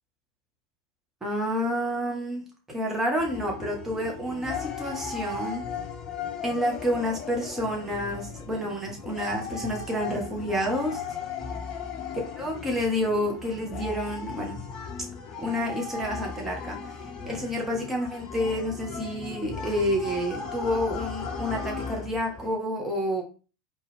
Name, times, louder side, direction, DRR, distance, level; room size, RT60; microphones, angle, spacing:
voice 1, 1.2-5.6 6.4-11.0 12.4-14.6 15.4-16.8 17.3-23.2, equal, 15° right, -1 dB, 1.3 m, -29 dB
sound 1, 3.2-22.5, left 5 dB, 35° left, 0.6 m, -37 dB
4.3 x 3.2 x 3.4 m, 0.35 s
figure-of-eight pair, 85°, 2 cm